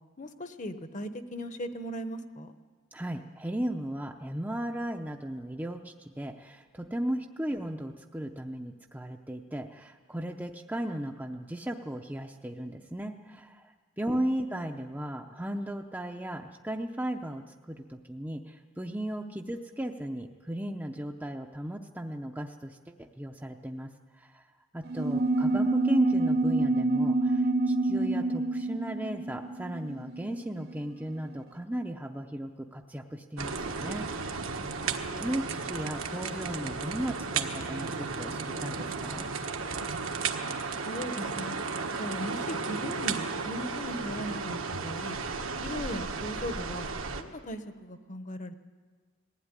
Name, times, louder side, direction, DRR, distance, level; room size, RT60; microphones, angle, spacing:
voice 1, 0.2-2.5 14.1-14.4 25.1-25.2 40.8-41.6 42.0-45.2 45.6-46.9 47.2-48.5, equal, 35° left, 9 dB, 1.1 m, -38 dB
voice 2, 2.9-24.5 24.7-34.6 35.1-39.3, right 1 dB, 10° right, 2 dB, 0.7 m, -36 dB
sound 1, 24.9-30.8, right 2 dB, 50° right, 0.7 m, -27 dB
sound 2, 33.4-47.2, right 4 dB, 75° right, 1.4 m, -34 dB
20.0 x 15.5 x 9.8 m, 1.5 s
head